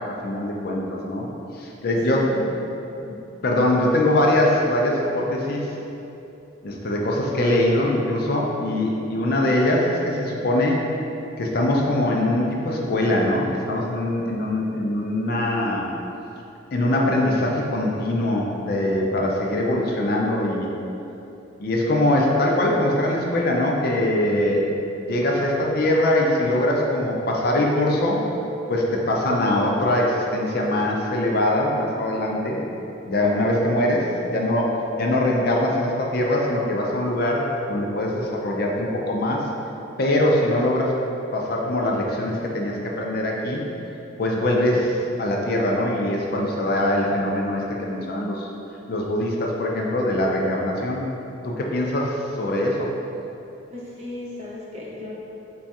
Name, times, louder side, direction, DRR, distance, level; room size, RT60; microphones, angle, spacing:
voice 1, 0.0-2.4 3.1-3.2 3.4-5.7 6.6-10.9 11.4-15.9 16.7-20.7 21.6-28.3 28.7-32.6 33.1-39.5 40.0-40.9 41.3-43.6 44.2-48.5 48.9-51.1 51.4-52.9, left 1 dB, 55° left, -1 dB, 0.4 m, -22 dB
voice 2, 2.1-2.4 53.7-55.1, left 2 dB, 35° right, -6 dB, 0.7 m, -36 dB
3.4 x 2.3 x 4.1 m, 2.9 s
head